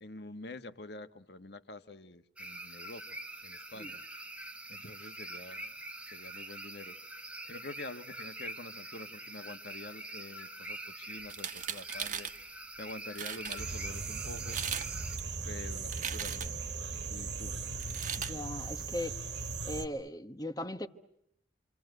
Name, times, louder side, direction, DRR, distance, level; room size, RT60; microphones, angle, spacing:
voice 1, 0.0-3.2 3.4-4.0 4.7-5.8 6.1-7.0 7.5-12.3 12.8-14.6 15.4-16.5 17.1-17.6, left 2 dB, 65° left, 1.5 m, -47 dB
sound 1, 2.4-15.2, right 1 dB, 5° right, 1.3 m, -45 dB
sound 2, 11.2-12.4 12.9-13.0 13.2-13.6 14.4-14.9 15.2-16.7 17.8-18.3, right 8 dB, 45° right, 1.5 m, -38 dB
sound 3, 13.6-19.9, right 4 dB, 70° right, 2.1 m, -38 dB
voice 2, 18.2-19.2 19.6-20.9, left 1 dB, 20° left, 1.2 m, -38 dB
27.5 x 27.0 x 7.9 m
head